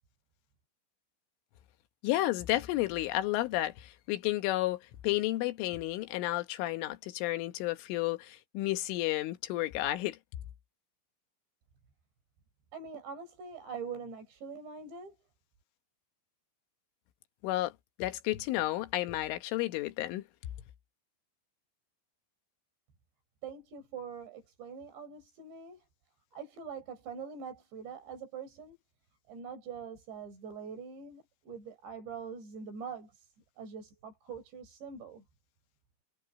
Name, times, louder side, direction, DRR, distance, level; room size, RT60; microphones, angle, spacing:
voice 1, 2.0-10.2 17.4-17.7 18.0-20.2, left 16 dB, 75° left, 3.6 m, -32 dB
voice 2, 12.7-15.2 23.4-25.8 26.3-28.8 29.3-35.2, right 6 dB, 60° right, 7.6 m, -44 dB
omnidirectional pair, 5.8 m